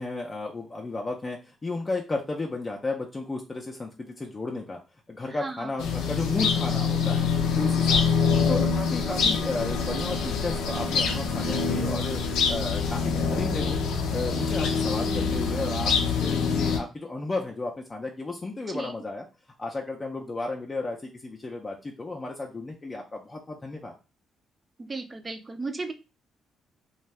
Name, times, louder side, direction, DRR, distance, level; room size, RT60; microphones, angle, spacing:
voice 1, 0.0-4.8 5.1-7.3 7.6-12.2 12.5-13.8 14.1-19.3 19.6-23.9, left 3 dB, 25° left, 1 dB, 0.5 m, -33 dB
voice 2, 5.3-5.7 18.7-18.9 24.8-25.9, right 3 dB, 30° right, 8 dB, 0.5 m, -35 dB
sound 1, 5.8-16.8, left 5 dB, 90° left, 0.5 m, -25 dB
2.6 x 2.2 x 3.2 m, 0.30 s
cardioid pair, 90°, 0 cm